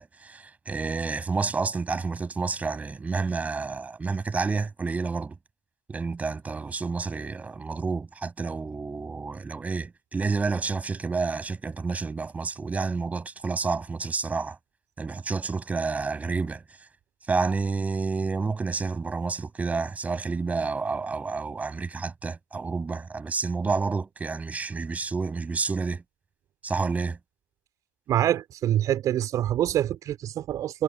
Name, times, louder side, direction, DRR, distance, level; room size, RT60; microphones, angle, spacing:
voice 1, 0.0-5.4 5.9-14.6 15.0-16.6 17.3-26.0 26.6-27.2, right 4 dB, 15° right, 7.7 m, -29 dB
voice 2, 28.1-30.8, right 11 dB, 30° right, 4.5 m, -25 dB
hypercardioid pair, 100°, 11 cm